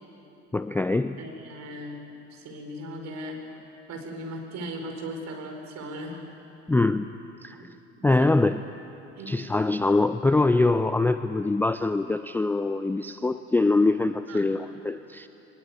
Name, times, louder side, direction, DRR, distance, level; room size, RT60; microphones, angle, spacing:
voice 1, 0.5-1.2 6.7-7.1 7.4-7.7 8.0-8.6 9.3-15.3, left 2 dB, 5° left, 11 dB, 0.4 m, -23 dB
voice 2, 1.2-2.0 2.3-3.4 3.9-6.2 8.0-8.4 9.1-9.4 14.3-14.5, equal, 45° right, 3 dB, 4.8 m, -38 dB
22.5 x 20.0 x 8.6 m, 2.9 s
figure-of-eight pair, 65°, 37 cm